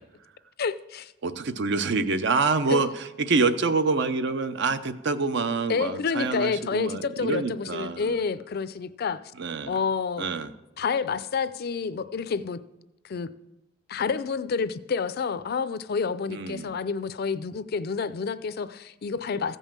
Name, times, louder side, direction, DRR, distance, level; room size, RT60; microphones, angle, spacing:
voice 1, 0.6-1.1 2.7-2.8 5.7-9.2 9.7-10.3 10.8-12.6 13.0-13.3 13.9-19.6, left 5 dB, 55° left, 14 dB, 0.4 m, -29 dB
voice 2, 1.2-8.2 9.4-9.8 10.2-10.5 16.3-16.7, right 4 dB, 65° right, 11 dB, 0.6 m, -26 dB
14.5 x 5.4 x 7.3 m, 0.99 s
head